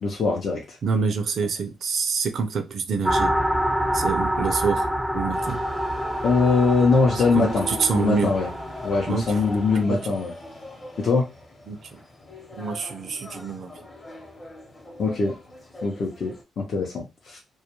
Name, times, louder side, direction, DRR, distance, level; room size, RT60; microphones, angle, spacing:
voice 1, 0.0-0.8 6.2-7.7 7.9-8.5 8.8-10.3 11.0-11.3 15.0-15.3 15.8-17.4, left 4 dB, 55° left, 0.6 m, -22 dB
voice 2, 0.8-3.3 3.9-4.9 5.1-5.6 7.3-8.3 9.1-9.4 9.9-10.2 11.7-12.0 12.6-13.9, right 5 dB, 60° right, 0.4 m, -26 dB
sound 1, 3.0-9.8, equal, ahead, 0.4 m, -27 dB
sound 2, 5.3-16.4, left 2 dB, 25° left, 0.8 m, -40 dB
2.3 x 2.2 x 2.9 m
cardioid pair, 95°, 0 cm